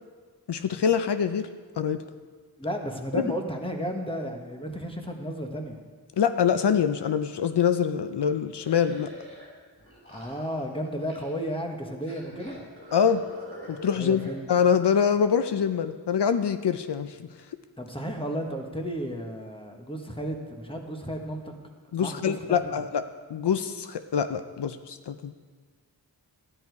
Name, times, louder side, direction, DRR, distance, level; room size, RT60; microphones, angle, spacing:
voice 1, 0.5-1.5 1.8-2.0 3.1-3.3 6.2-9.1 12.9-13.2 13.7-17.2 21.9-23.0 23.3-25.3, left 7 dB, 80° left, 10 dB, 0.6 m, -25 dB
voice 2, 2.6-5.7 10.1-12.6 14.0-14.5 17.8-21.5 22.0-22.8, equal, 15° left, 3 dB, 1.4 m, -33 dB
sound 1, 8.6-9.5 9.8-11.5 12.0-14.4, equal, 30° left, 3.9 m, -46 dB
13.5 x 10.0 x 4.7 m, 1.5 s
wide cardioid pair, 75°, 40 cm